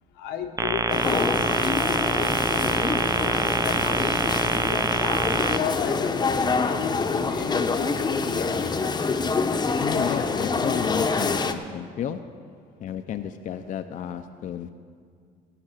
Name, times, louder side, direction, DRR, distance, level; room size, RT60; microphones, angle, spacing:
voice 1, 0.1-4.9 5.4-8.8, left 7 dB, 90° left, 5 dB, 1.1 m, -34 dB
sound 1, 0.6-5.6, right 4 dB, 20° right, 0.5 m, -25 dB
sound 2, 0.9-11.5, left 4 dB, 25° left, 0.8 m, -26 dB
voice 2, 9.8-12.4 12.8-14.7, left 8 dB, 50° left, 8 dB, 0.5 m, -32 dB
17.0 x 5.8 x 7.3 m, 2.1 s
cardioid pair, 110°, 17 cm